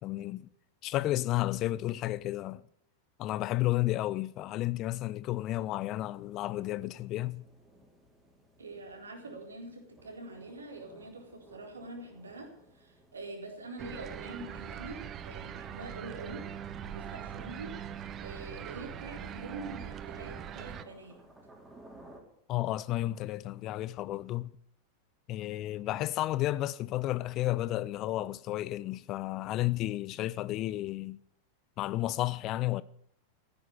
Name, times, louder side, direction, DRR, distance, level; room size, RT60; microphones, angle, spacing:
voice 1, 0.0-0.5 0.8-2.6 3.2-7.4 22.5-24.5 25.3-31.2 31.8-32.8, left 15 dB, 35° left, 0.5 m, -32 dB
sound 1, 5.2-22.2, right 1 dB, 10° right, 4.5 m, -58 dB
voice 2, 8.6-16.5 16.8-21.2, right 2 dB, 75° right, 4.1 m, -45 dB
sound 2, 13.8-20.8, right 9 dB, 30° right, 0.9 m, -42 dB
15.0 x 10.5 x 8.4 m
figure-of-eight pair, 90°, 0 cm